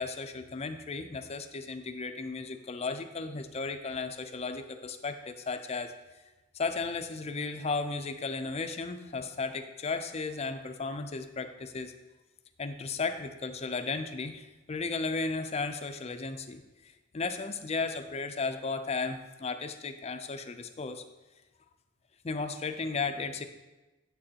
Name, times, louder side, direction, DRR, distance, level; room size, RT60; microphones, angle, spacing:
voice 1, 0.0-5.9 6.5-11.9 12.6-16.6 17.1-21.0 22.2-23.4, left 4 dB, 30° left, 8 dB, 0.5 m, -35 dB
8.9 x 7.6 x 2.9 m, 1.1 s
head